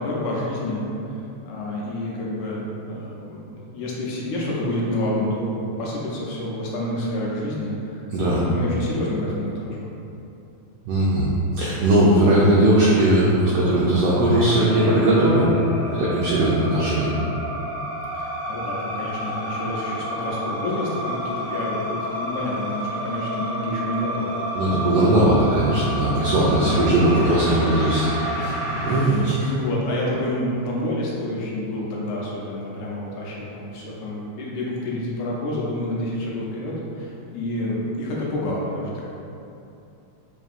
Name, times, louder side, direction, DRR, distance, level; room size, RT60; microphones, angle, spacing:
voice 1, 0.0-8.0 8.3-9.9 18.1-25.4 26.4-26.9 28.4-28.5 28.8-39.0, left 1 dB, 75° left, -5 dB, 1.8 m, -29 dB
voice 2, 8.1-8.4 10.9-11.3 11.6-15.5 16.0-17.1 24.6-28.1 28.4-28.5 28.8-29.5, right 1 dB, 90° right, -6 dB, 1.4 m, -19 dB
sound 1, 14.2-29.0, equal, 60° left, 1.0 m, -30 dB
5.2 x 2.7 x 2.4 m, 2.8 s
omnidirectional pair, 3.3 m